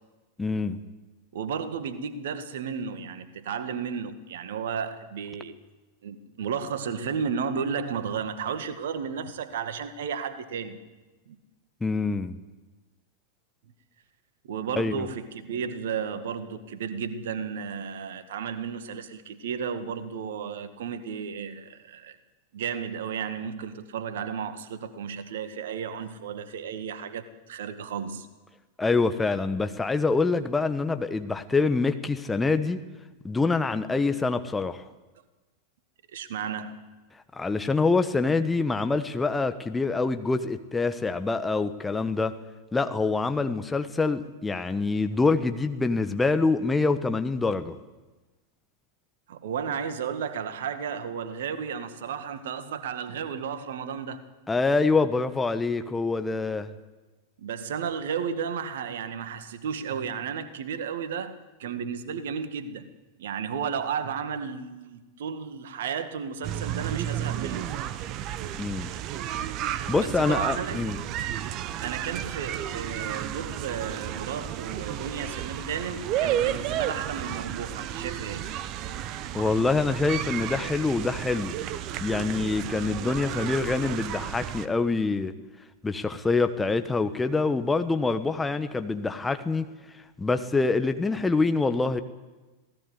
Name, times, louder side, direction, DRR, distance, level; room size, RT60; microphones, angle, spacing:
voice 1, 0.4-0.8 11.8-12.4 14.8-15.0 28.8-32.8 33.2-34.8 37.3-42.3 42.7-47.7 54.5-56.7 68.6-68.9 69.9-71.0 79.3-81.6 82.0-85.3 85.8-89.7 90.2-92.0, left 3 dB, 10° left, 1.2 m, -25 dB
voice 2, 1.3-5.5 6.0-10.8 11.3-11.4 14.4-22.2 22.5-28.3 36.1-36.8 49.3-54.2 57.4-62.9 63.2-67.7 68.4-68.7 70.0-70.8 71.8-78.5, right 7 dB, 60° right, 1.9 m, -33 dB
sound 1, 66.4-84.7, right 11 dB, 40° right, 1.1 m, -32 dB
26.5 x 18.0 x 8.2 m
figure-of-eight pair, 90°, 0 cm